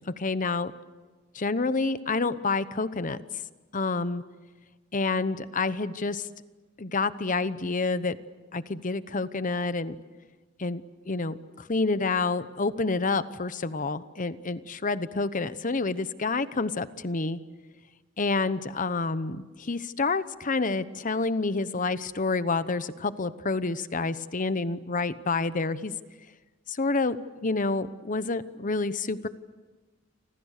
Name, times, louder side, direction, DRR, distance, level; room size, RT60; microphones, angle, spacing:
voice 1, 0.1-0.7 1.3-3.2 3.7-4.2 4.9-6.3 6.8-8.2 8.5-10.0 10.6-10.8 11.1-17.4 18.2-25.9 26.7-27.2 27.4-29.3, left 3 dB, 40° left, 14 dB, 1.0 m, -28 dB
29.5 x 25.5 x 6.6 m, 1.3 s
head